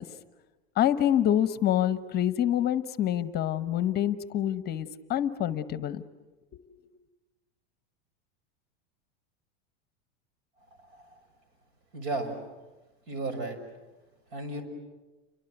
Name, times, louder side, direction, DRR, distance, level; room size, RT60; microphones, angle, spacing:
voice 1, 0.8-6.0, left 11 dB, 30° left, 13 dB, 1.0 m, -26 dB
voice 2, 11.9-12.4 13.1-13.6 14.3-14.6, right 2 dB, 65° right, 8 dB, 6.2 m, -33 dB
29.5 x 24.0 x 8.0 m, 1.2 s
supercardioid pair, 130°, 31 cm